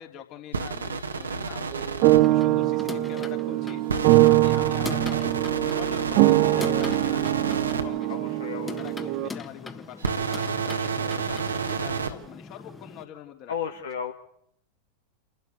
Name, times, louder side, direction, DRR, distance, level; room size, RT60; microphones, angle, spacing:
voice 1, 0.0-1.9 2.3-3.8 4.3-8.2 8.8-13.5, left 11 dB, 40° left, 5 dB, 3.0 m, -44 dB
sound 1, 0.5-2.2 3.9-7.8 10.0-12.1, right 5 dB, 75° right, 1.7 m, -30 dB
sound 2, 1.7-9.3, right 19 dB, 45° right, 0.9 m, -23 dB
sound 3, 2.2-13.1, left 4 dB, 15° left, 1.6 m, -40 dB
voice 2, 8.1-8.8 13.5-14.1, left 7 dB, 65° left, 3 dB, 1.5 m, -33 dB
29.0 x 12.0 x 8.3 m, 0.69 s
figure-of-eight pair, 90°, 0 cm